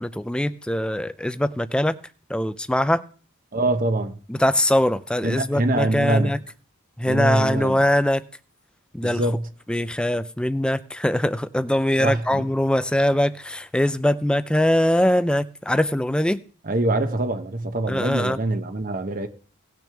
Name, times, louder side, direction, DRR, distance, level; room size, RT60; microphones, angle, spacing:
voice 1, 0.0-1.9 2.3-3.0 4.3-6.4 7.0-8.2 8.9-9.2 9.7-16.4 17.9-18.4, left 1 dB, 5° left, 0.4 m, -22 dB
voice 2, 3.5-4.2 5.2-6.4 7.1-7.8 9.0-9.5 12.0-12.4 16.6-19.3, right 2 dB, 40° right, 0.9 m, -24 dB
18.0 x 6.1 x 3.4 m
head